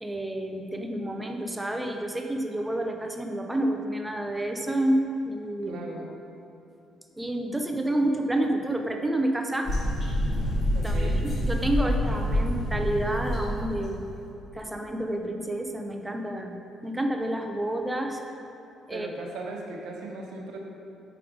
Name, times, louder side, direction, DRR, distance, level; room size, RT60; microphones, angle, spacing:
voice 1, 0.0-5.8 7.2-9.7 10.8-14.0 14.5-18.2 18.9-19.1, right 1 dB, 5° right, 3 dB, 0.4 m, -29 dB
voice 2, 5.7-6.1 7.5-7.7 10.7-11.2 18.9-20.6, right 2 dB, 85° right, -1 dB, 0.9 m, -38 dB
sound 1, 9.6-14.0, equal, 30° left, 1.1 m, -27 dB
5.0 x 4.9 x 4.6 m, 2.8 s
cardioid pair, 175°, 0 cm